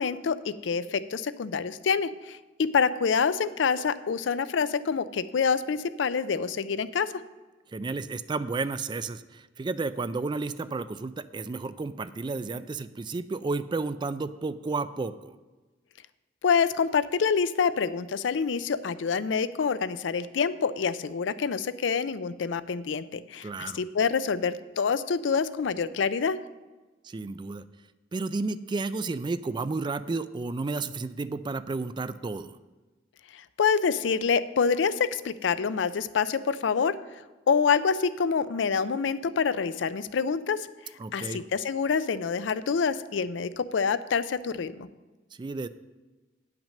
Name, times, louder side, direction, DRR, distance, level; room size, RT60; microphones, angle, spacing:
voice 1, 0.0-7.1 16.4-26.4 33.3-36.9 37.5-40.7 41.1-44.9, left 6 dB, 85° left, 15 dB, 0.4 m, -26 dB
voice 2, 7.7-15.4 23.4-23.8 27.0-27.6 28.1-32.6 41.0-41.4 45.4-45.7, right 3 dB, 25° right, 14 dB, 0.3 m, -32 dB
8.9 x 6.0 x 6.5 m, 1.2 s
head